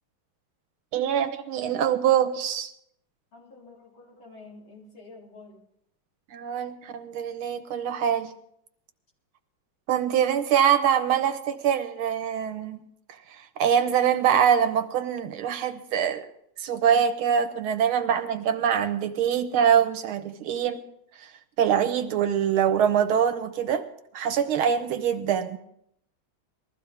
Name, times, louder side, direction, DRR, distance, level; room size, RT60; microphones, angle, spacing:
voice 1, 0.9-2.7 6.3-8.3 9.9-12.8 13.4-16.3 16.6-20.8 21.2-21.3 21.6-23.9 24.1-25.6, right 8 dB, 85° right, 1.9 m, -24 dB
voice 2, 3.3-5.6, left 3 dB, 70° left, 4.5 m, -48 dB
21.0 x 14.5 x 3.5 m
omnidirectional pair, 2.2 m